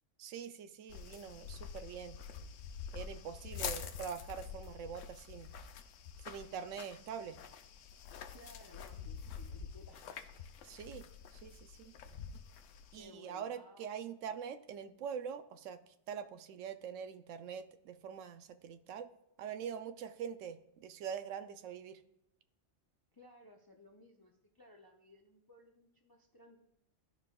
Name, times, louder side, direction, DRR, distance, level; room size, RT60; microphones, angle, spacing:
voice 1, 0.2-2.2 2.9-5.5 6.2-7.4 10.6-11.9 12.9-19.1 19.4-22.0, right 7 dB, 90° right, 10 dB, 0.9 m, -44 dB
sound 1, 0.9-13.0, left 7 dB, 80° left, 1.0 m, -47 dB
voice 2, 8.3-10.1 13.0-13.9 23.1-26.6, left 1 dB, 35° left, 3 dB, 0.3 m, -59 dB
12.5 x 4.6 x 2.3 m, 0.83 s
omnidirectional pair, 1.3 m